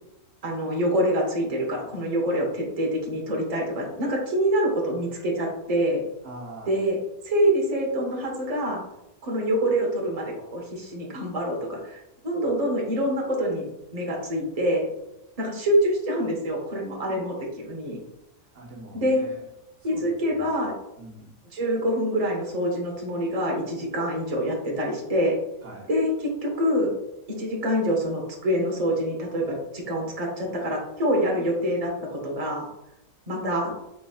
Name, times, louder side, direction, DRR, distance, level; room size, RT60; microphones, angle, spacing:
voice 1, 0.4-6.0 6.7-7.0 7.2-8.8 9.2-13.6 13.9-14.9 15.4-18.0 18.9-19.2 19.8-20.7 21.5-25.4 25.9-26.9 27.4-32.7 33.3-33.7, equal, 30° right, -1 dB, 0.9 m, -26 dB
voice 2, 6.2-6.8 18.5-19.4 19.8-20.6 21.0-21.3 25.6-25.9, right 2 dB, 65° right, -3 dB, 1.1 m, -43 dB
4.6 x 4.0 x 2.3 m, 0.87 s
omnidirectional pair, 1.4 m